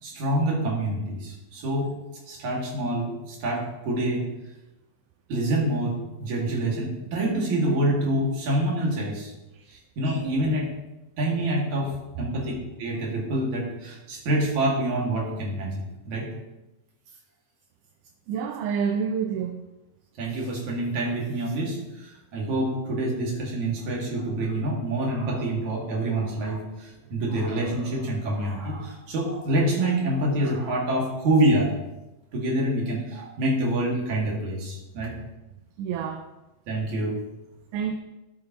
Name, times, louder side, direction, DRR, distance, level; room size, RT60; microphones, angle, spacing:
voice 1, 0.0-1.9 2.3-4.3 5.3-9.3 9.7-10.7 11.2-11.9 12.2-15.8 16.1-16.3 20.2-31.7 32.3-35.1 36.7-37.2, right 1 dB, 65° right, -3 dB, 3.5 m, -26 dB
voice 2, 18.3-19.6 35.8-36.3 37.7-38.0, right 7 dB, 80° right, 5 dB, 2.1 m, -28 dB
13.0 x 8.5 x 3.0 m, 0.98 s
omnidirectional pair, 3.7 m